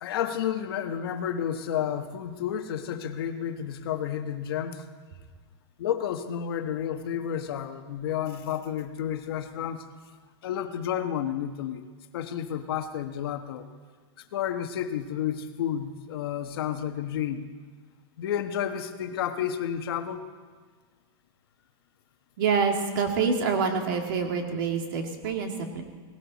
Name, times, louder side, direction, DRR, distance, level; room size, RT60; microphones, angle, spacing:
voice 1, 0.0-4.8 5.8-9.8 10.4-11.8 12.1-13.6 14.3-17.5 18.2-20.2, left 9 dB, 55° left, 7 dB, 1.3 m, -31 dB
voice 2, 22.4-25.8, right 5 dB, 45° right, 3 dB, 2.2 m, -26 dB
19.5 x 18.0 x 4.1 m, 1.5 s
supercardioid pair, 180°, 15 cm